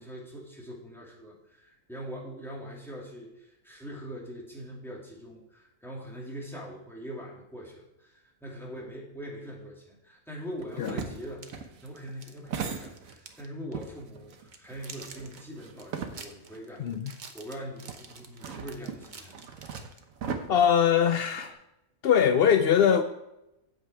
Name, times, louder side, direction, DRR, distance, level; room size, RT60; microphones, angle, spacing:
voice 1, 0.0-19.4, equal, ahead, -4 dB, 2.5 m, -42 dB
sound 1, 10.6-13.4 13.7-16.6 16.9-17.0 17.9-21.5, right 6 dB, 65° right, 1.3 m, -39 dB
sound 2, 11.2-13.5 13.7-13.9 14.3-20.4, right 4 dB, 40° right, 0.8 m, -48 dB
voice 2, 16.8-17.1 20.5-21.6 22.0-23.0, left 8 dB, 80° left, 9 dB, 0.5 m, -22 dB
8.8 x 7.9 x 4.6 m, 0.88 s
omnidirectional pair, 1.6 m